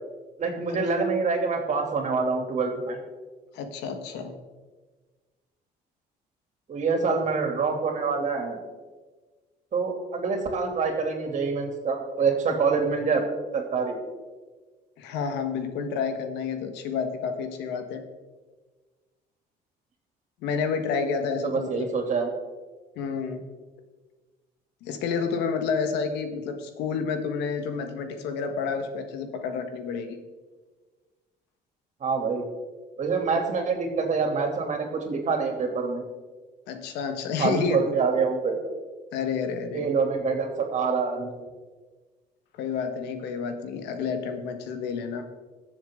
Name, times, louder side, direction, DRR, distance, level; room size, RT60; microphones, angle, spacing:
voice 1, 0.4-3.0 6.7-8.6 9.7-13.2 13.5-14.0 21.4-22.3 32.0-32.4 33.0-36.0 37.4-38.5 39.7-41.5, right 4 dB, 45° right, 3 dB, 2.8 m, -26 dB
voice 2, 3.5-4.3 15.0-18.0 20.4-21.9 22.9-23.4 24.8-30.2 36.7-37.8 39.1-39.9 42.6-45.3, left 5 dB, 90° left, 7 dB, 1.5 m, -30 dB
21.0 x 7.3 x 3.8 m, 1.3 s
cardioid pair, 110°, 17 cm